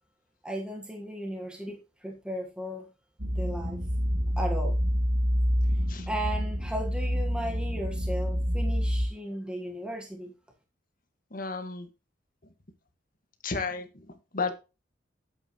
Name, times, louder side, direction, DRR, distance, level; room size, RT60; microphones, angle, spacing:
voice 1, 0.4-2.9 3.3-3.8 4.4-4.8 6.1-10.3, equal, 5° right, 1 dB, 1.4 m, -36 dB
sound 1, 3.2-9.1, equal, 65° right, 2.2 m, -27 dB
voice 2, 11.3-11.9 13.4-14.5, left 4 dB, 50° left, 7 dB, 1.7 m, -33 dB
11.0 x 8.1 x 3.0 m, 0.29 s
head